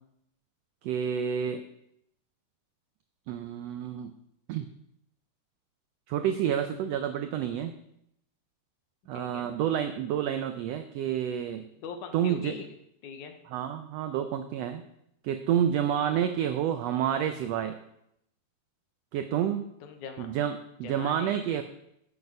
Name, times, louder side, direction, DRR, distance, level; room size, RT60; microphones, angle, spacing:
voice 1, 0.8-1.6 3.3-4.1 4.5-4.6 6.1-7.7 9.1-11.6 12.1-12.6 13.5-14.8 15.2-17.8 19.1-19.6 20.2-21.6, right 9 dB, 90° right, 9 dB, 1.4 m, -29 dB
voice 2, 9.1-9.5 11.8-12.7 13.0-13.4 16.0-16.3 19.8-20.3 20.8-21.4, left 6 dB, 75° left, 6 dB, 2.5 m, -42 dB
9.3 x 7.9 x 5.4 m, 0.78 s
omnidirectional pair, 3.6 m